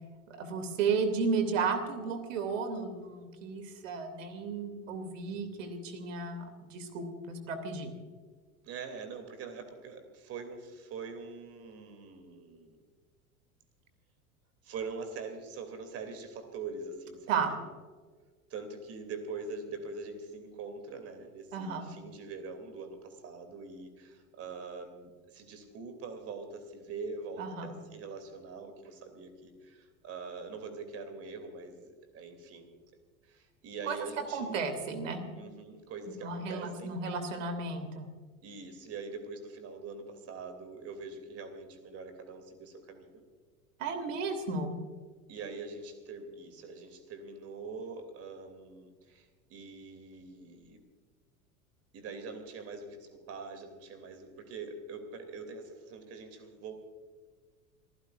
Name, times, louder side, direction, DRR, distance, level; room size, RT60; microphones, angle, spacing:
voice 1, 0.3-7.9 17.3-17.5 21.5-21.9 27.4-27.7 33.9-34.0 34.3-35.2 36.1-38.1 43.8-44.7, right 4 dB, 60° right, 8 dB, 2.8 m, -33 dB
voice 2, 8.6-12.8 14.6-17.6 18.5-32.7 33.2-34.7 35.3-37.2 38.4-43.2 45.3-50.8 51.9-56.7, right 4 dB, 35° right, 8 dB, 2.9 m, -43 dB
28.5 x 15.0 x 2.5 m, 1.5 s
figure-of-eight pair, 85°, 43 cm